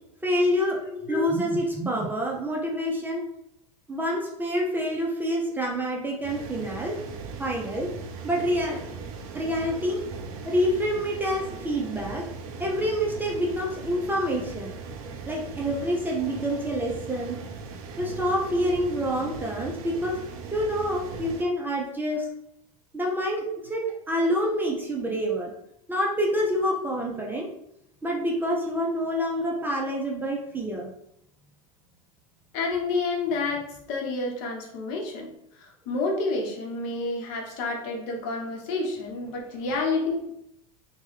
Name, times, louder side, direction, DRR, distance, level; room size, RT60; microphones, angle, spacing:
voice 1, 0.2-0.8 1.1-3.2 3.9-7.0 7.4-7.9 8.2-8.8 9.3-10.0 10.4-12.2 12.6-14.7 15.3-17.4 18.0-20.2 20.5-22.3 22.9-25.5 25.9-27.5 28.0-30.9, equal, 10° right, -2 dB, 0.5 m, -27 dB
voice 2, 0.9-1.2 32.5-35.3 35.6-40.3, left 3 dB, 60° left, 0 dB, 0.9 m, -29 dB
sound 1, 6.2-21.4, right 4 dB, 65° right, 0.5 m, -39 dB
2.9 x 2.2 x 3.1 m, 0.78 s
supercardioid pair, 110°, 19 cm